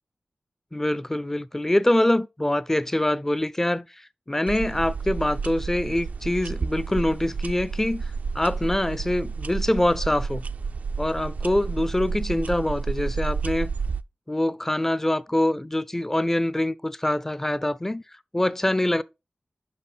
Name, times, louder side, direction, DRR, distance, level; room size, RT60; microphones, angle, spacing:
voice 1, 0.7-3.9 4.3-8.0 8.3-10.4 11.0-13.7 14.3-18.0 18.3-19.0, left 1 dB, 15° left, 0.4 m, -24 dB
sound 1, 4.5-14.0, right 5 dB, 70° right, 0.3 m, -31 dB
5.8 x 5.7 x 4.0 m
wide cardioid pair, 105°, 3 cm